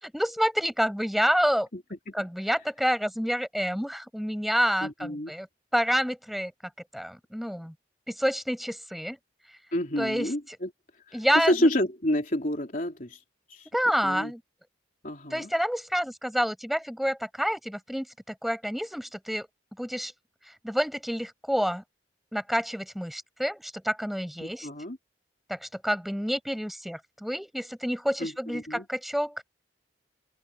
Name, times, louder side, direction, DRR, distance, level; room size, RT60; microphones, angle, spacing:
voice 1, 0.0-1.7 2.1-5.5 5.7-6.5 6.9-7.7 8.1-9.2 10.0-10.3 11.1-11.7 13.7-14.4 15.3-18.1 18.4-19.5 19.8-20.1 20.6-21.8 22.3-24.7 25.5-29.4, equal, ahead, 6.6 m, -28 dB
voice 2, 4.8-5.3 9.7-10.7 11.1-13.2 13.5-13.7 14.0-14.3 15.0-15.5 24.4-25.0 28.2-28.9, left 1 dB, 45° left, 3.6 m, -29 dB
head